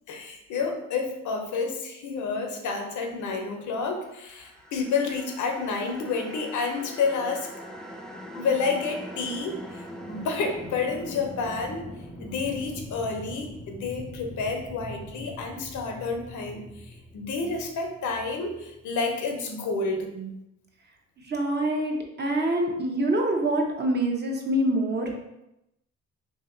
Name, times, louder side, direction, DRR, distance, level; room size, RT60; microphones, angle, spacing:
voice 1, 0.1-7.5 8.3-11.9 12.2-20.1, left 4 dB, 75° left, 3 dB, 0.7 m, -30 dB
sound 1, 4.2-19.4, equal, ahead, 0.4 m, -42 dB
voice 2, 21.3-25.1, right 1 dB, 35° right, 1 dB, 0.8 m, -25 dB
2.8 x 2.8 x 3.8 m, 0.88 s
cardioid pair, 90°, 30 cm